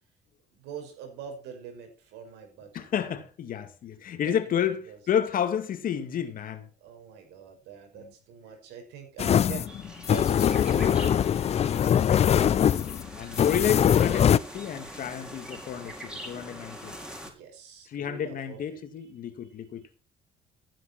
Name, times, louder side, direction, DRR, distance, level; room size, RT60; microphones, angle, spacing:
voice 1, 0.5-2.8 4.2-4.6 4.9-5.0 6.8-9.7 10.1-12.1 17.2-18.8, right 6 dB, 90° right, 5.4 m, -43 dB
voice 2, 2.7-6.7 9.2-9.6 11.9-12.7 13.2-17.0 17.9-19.9, left 9 dB, 55° left, 2.2 m, -31 dB
sound 1, 9.2-14.4, left 9 dB, 40° left, 0.5 m, -22 dB
sound 2, 9.7-17.3, equal, 5° right, 4.6 m, -43 dB
16.0 x 9.3 x 4.4 m
cardioid pair, 110°, 17 cm